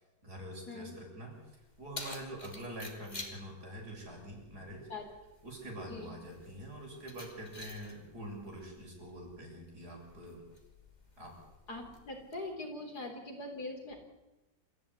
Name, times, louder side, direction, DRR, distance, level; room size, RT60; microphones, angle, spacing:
voice 1, 0.2-1.3 1.8-4.9 5.4-10.4 11.2-11.3, right 1 dB, 60° right, 0 dB, 7.8 m, -45 dB
Keys jangling, 1.3-12.3, left 2 dB, 25° left, 3.0 m, -51 dB
voice 2, 11.7-14.0, left 2 dB, 60° left, 3 dB, 4.8 m, -42 dB
28.0 x 15.5 x 9.9 m, 1.1 s
omnidirectional pair, 1.9 m